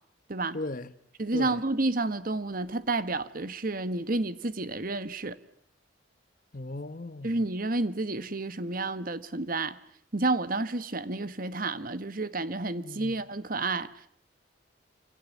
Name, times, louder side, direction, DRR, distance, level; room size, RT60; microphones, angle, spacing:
voice 1, 0.5-0.9 1.3-1.6 6.5-7.4 12.8-13.2, left 2 dB, 45° left, 1.1 m, -37 dB
voice 2, 1.2-5.4 7.2-9.8 10.1-13.9, right 2 dB, 45° right, 1.2 m, -30 dB
27.0 x 26.5 x 7.2 m
head